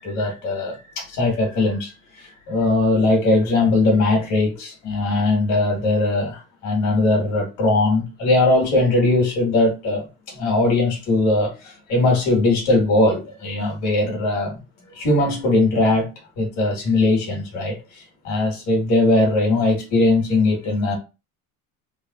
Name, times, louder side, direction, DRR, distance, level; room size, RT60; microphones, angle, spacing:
voice 1, 0.0-14.6 14.9-16.1 16.4-21.0, left 2 dB, 60° left, 1.6 m, -20 dB
3.4 x 2.2 x 2.4 m
cardioid pair, 155°, 32 cm